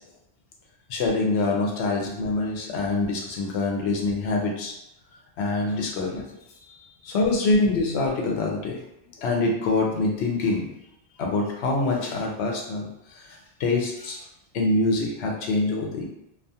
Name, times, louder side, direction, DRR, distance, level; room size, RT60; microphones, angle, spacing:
voice 1, 0.9-4.7 5.4-6.2 7.0-8.7 9.2-10.6 11.2-14.3 14.5-16.1, left 3 dB, 80° left, -1 dB, 0.9 m, -25 dB
2.4 x 2.3 x 2.7 m, 0.81 s
omnidirectional pair, 1.1 m